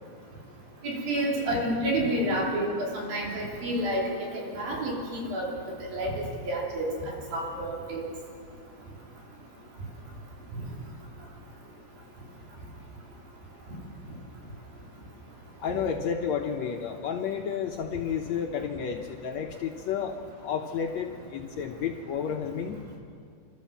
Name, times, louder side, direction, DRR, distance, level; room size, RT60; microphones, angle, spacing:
voice 1, 0.8-4.1 4.3-5.5 5.9-6.1 6.5-8.0, right 1 dB, 75° right, -3 dB, 5.1 m, -29 dB
voice 2, 15.6-22.8, left 7 dB, 70° left, 3 dB, 1.8 m, -31 dB
29.0 x 13.0 x 7.2 m, 2.4 s
omnidirectional pair, 4.1 m